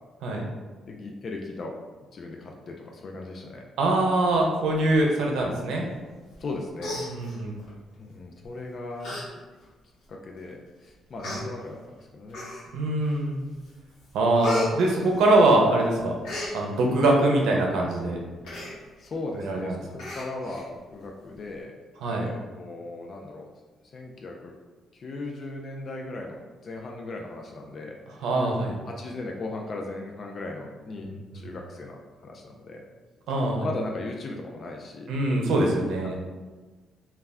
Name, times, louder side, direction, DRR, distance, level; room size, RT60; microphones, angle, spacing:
voice 1, 0.9-1.7 2.1-3.7 6.4-7.0 8.0-9.3 10.1-12.5 19.0-21.8 22.1-23.5 23.9-24.5 24.9-28.0 28.9-32.8 33.6-35.1, left 2 dB, 50° left, 1 dB, 0.3 m, -37 dB
voice 2, 3.8-5.9 7.0-7.6 11.3-11.4 12.7-13.4 14.1-16.1 16.5-18.2 19.3-19.8 22.0-22.3 28.2-28.7 31.3-31.5 33.3-33.7 35.1-36.2, right 2 dB, 85° right, 0 dB, 0.5 m, -23 dB
Human voice, 6.3-6.5 6.8-7.7 8.4-8.6 9.0-9.2 9.6-9.7 10.5-10.6 11.2-11.4 12.3-12.9 13.3-13.7 14.0-15.7 16.0-16.5 18.4-18.7 19.1-19.2 19.5-19.6 20.0-20.6 21.0-21.1, left 1 dB, 80° left, 0.9 m, -34 dB
2.2 x 2.1 x 3.5 m, 1.3 s
cardioid pair, 90°, 0 cm